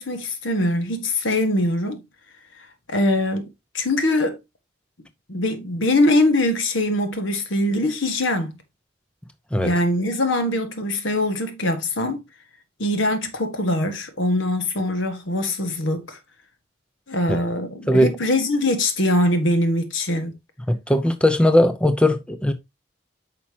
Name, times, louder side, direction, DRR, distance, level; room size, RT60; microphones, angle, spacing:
voice 1, 0.0-2.0 2.9-4.4 5.3-8.5 9.6-12.2 12.8-16.2 17.1-20.3, left 1 dB, 85° left, 1.7 m, -22 dB
voice 2, 20.7-22.5, left 1 dB, 5° left, 0.6 m, -18 dB
8.7 x 5.8 x 2.9 m
head